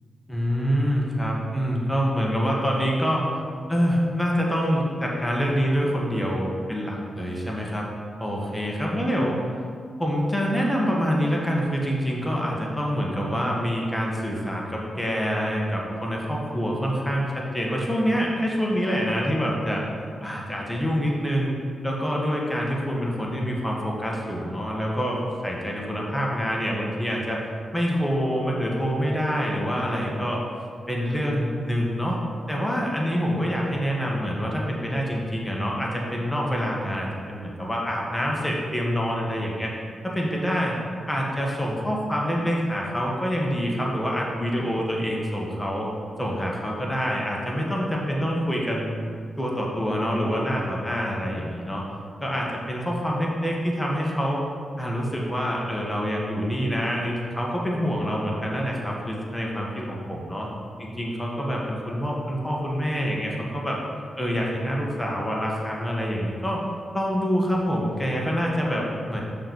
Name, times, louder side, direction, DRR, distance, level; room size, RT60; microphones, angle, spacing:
voice 1, 0.3-3.2 3.7-7.9 8.2-9.3 10.0-19.8 20.2-21.5 21.8-27.4 27.7-30.4 30.9-32.2 32.5-39.7 40.0-40.8 41.1-45.9 46.2-49.0 49.4-51.8 52.2-54.4 54.8-60.5 60.8-63.8 64.2-66.6 66.9-69.2, equal, 10° left, -2 dB, 1.5 m, -26 dB
6.4 x 4.1 x 6.4 m, 2.2 s
supercardioid pair, 50°, 0 cm